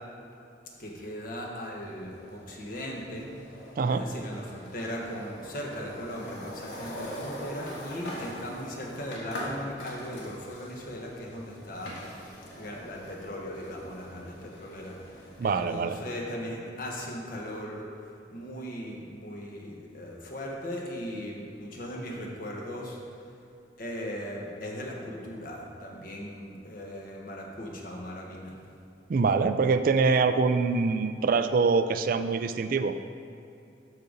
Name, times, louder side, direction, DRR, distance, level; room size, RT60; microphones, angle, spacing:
voice 1, 0.8-3.3 3.9-17.8 18.3-23.0 23.8-28.6, equal, 50° left, -1 dB, 1.3 m, -38 dB
sound 1, 1.7-15.8, equal, 85° left, 1.8 m, -43 dB
voice 2, 15.4-16.0 29.1-33.0, right 4 dB, 50° right, 10 dB, 0.3 m, -24 dB
12.0 x 5.1 x 4.0 m, 2.6 s
head